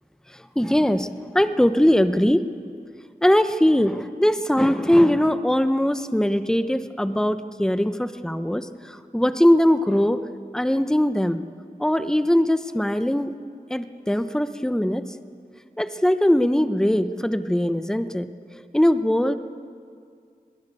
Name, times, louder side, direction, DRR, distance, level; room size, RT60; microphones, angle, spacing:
voice 1, 0.3-2.5 3.2-10.3 10.5-11.4 11.8-13.3 13.7-15.0 15.8-19.4, left 1 dB, 5° left, 11 dB, 0.9 m, -21 dB
22.0 x 19.5 x 8.6 m, 2.2 s
wide cardioid pair, 45°, 16 cm